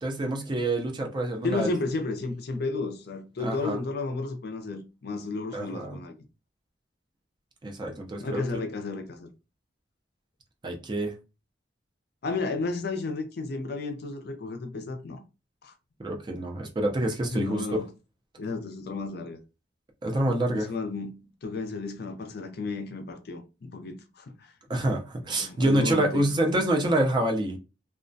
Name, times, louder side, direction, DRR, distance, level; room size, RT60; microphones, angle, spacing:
voice 1, 0.0-1.7 3.4-3.8 5.5-6.0 7.6-8.6 10.6-11.1 16.0-17.7 20.0-20.7 24.7-27.6, right 1 dB, 25° right, 0.5 m, -27 dB
voice 2, 1.4-6.1 8.2-9.3 12.2-15.2 15.6-15.7 17.3-17.9 18.4-19.4 20.5-24.5 25.3-26.3, left 3 dB, 60° left, 0.5 m, -33 dB
2.2 x 2.1 x 2.5 m
head